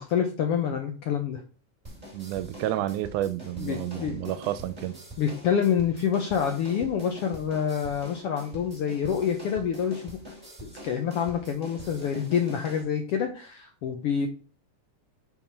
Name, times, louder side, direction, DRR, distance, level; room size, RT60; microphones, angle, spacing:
voice 1, 0.0-1.4 3.6-4.2 5.2-10.2 10.6-14.3, left 8 dB, 75° left, 1.4 m, -27 dB
sound 1, 1.8-12.8, right 1 dB, 15° right, 1.7 m, -45 dB
voice 2, 2.1-5.0, right 13 dB, 80° right, 2.0 m, -30 dB
5.5 x 4.7 x 5.6 m
omnidirectional pair, 3.6 m